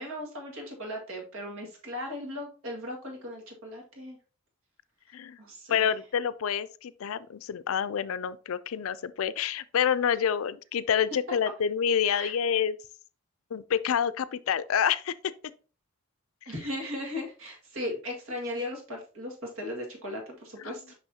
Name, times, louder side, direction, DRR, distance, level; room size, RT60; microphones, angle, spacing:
voice 1, 0.0-4.2 5.4-6.0 12.1-12.3 16.5-20.9, left 1 dB, 75° right, 1.9 m, -37 dB
voice 2, 5.7-12.8 13.5-15.1 20.6-20.7, left 8 dB, 80° left, 0.4 m, -28 dB
6.2 x 5.5 x 2.8 m
head